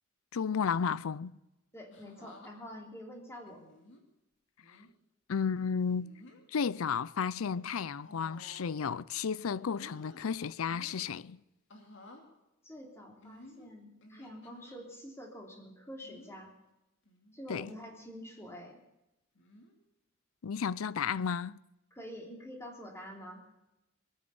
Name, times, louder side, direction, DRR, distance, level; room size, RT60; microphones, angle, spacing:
voice 1, 0.3-1.4 5.3-6.1 6.5-11.4 17.5-17.7 20.4-21.6, left 6 dB, 90° left, 0.5 m, -33 dB
voice 2, 1.7-3.6 12.6-16.5 17.3-18.8 21.9-23.4, equal, 15° left, 3.2 m, -47 dB
sound 1, 1.9-2.5 3.5-4.0 4.6-4.9 5.9-6.5 7.0-7.3 8.0-8.9 9.3-10.2 10.6-11.1 11.7-12.3 13.2-14.8 16.0-16.4 17.1-17.4 17.7-17.8 19.4-19.8 20.8-21.1, left 1 dB, 65° left, 2.8 m, -55 dB
21.0 x 9.3 x 7.0 m
head